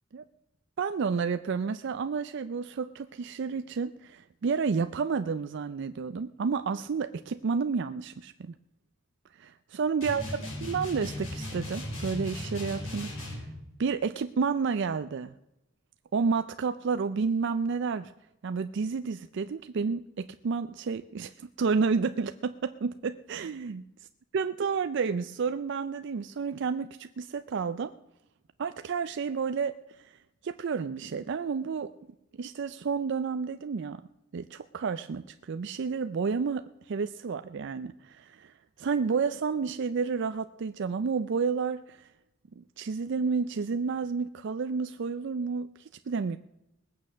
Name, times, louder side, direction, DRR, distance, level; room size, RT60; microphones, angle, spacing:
voice 1, 0.8-8.6 9.4-13.5 13.8-15.3 16.1-18.1 18.4-23.8 24.3-27.9 28.6-30.2 30.4-31.9 32.4-34.0 34.3-42.1 42.6-46.4, right 5 dB, 60° right, 11 dB, 0.4 m, -31 dB
sound 1, 10.0-13.5, left 1 dB, 85° left, 6.2 m, -37 dB
20.0 x 8.5 x 6.2 m, 0.92 s
head